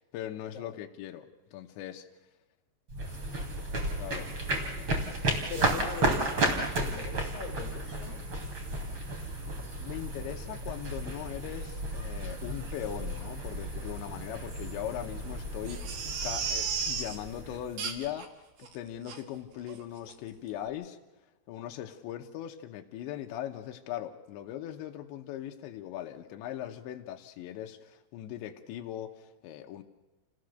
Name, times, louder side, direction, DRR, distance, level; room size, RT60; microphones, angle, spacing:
voice 1, 0.0-2.0 4.0-4.3 4.6-4.9 9.8-18.3 18.6-21.0 21.5-29.8, left 11 dB, 85° left, 3 dB, 3.4 m, -40 dB
sound 1, 2.9-18.0, right 2 dB, 30° right, 3.1 m, -33 dB
voice 2, 5.5-8.3, left 5 dB, 60° left, 4 dB, 3.2 m, -41 dB
Crying sobbing, 15.7-17.2 17.8-18.3 18.6-18.7 19.1-19.2 19.7-19.8 20.1-20.2, right 6 dB, 55° right, 2.8 m, -34 dB
28.5 x 16.5 x 6.5 m, 1.1 s
omnidirectional pair, 5.2 m